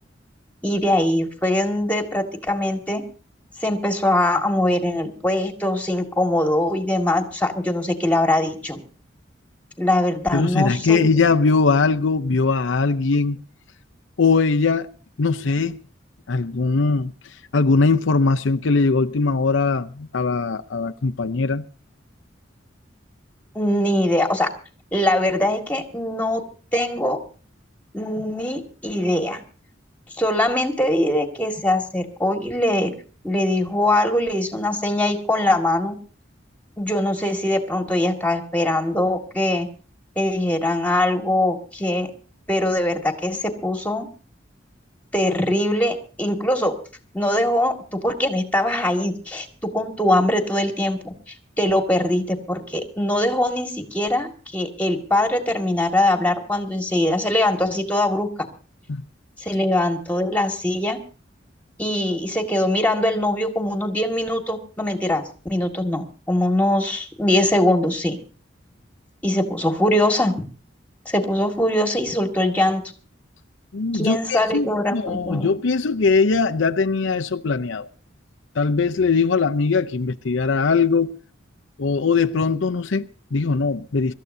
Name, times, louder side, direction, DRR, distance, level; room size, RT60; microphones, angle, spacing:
voice 1, 0.6-3.0 3.6-8.8 9.8-11.0 23.6-24.5 24.9-26.4 26.7-27.2 27.9-29.4 30.2-32.9 33.2-36.0 36.8-39.7 40.2-42.1 42.5-44.1 45.1-46.7 47.1-47.7 48.0-49.5 49.7-51.1 51.6-58.5 59.4-61.0 61.8-68.2 69.2-70.5 71.1-72.8 73.9-75.6, left 1 dB, 10° left, 1.9 m, -22 dB
voice 2, 10.3-13.4 14.2-14.9 15.2-15.8 16.3-17.1 17.5-21.6 58.9-59.0 73.7-77.9 78.6-81.2 81.8-84.1, left 4 dB, 85° left, 0.7 m, -20 dB
25.0 x 13.5 x 2.7 m
head